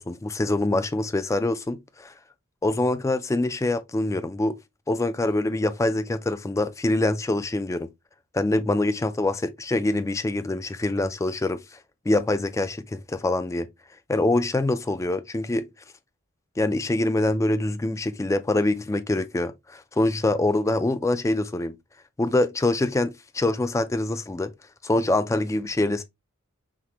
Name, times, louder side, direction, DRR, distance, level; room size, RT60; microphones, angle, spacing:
voice 1, 0.0-2.1 2.6-4.6 4.9-7.9 8.3-11.6 12.1-13.7 14.1-15.7 16.6-21.8 22.2-24.5 24.8-26.0, left 2 dB, 15° left, 0.3 m, -24 dB
5.8 x 2.1 x 2.9 m
head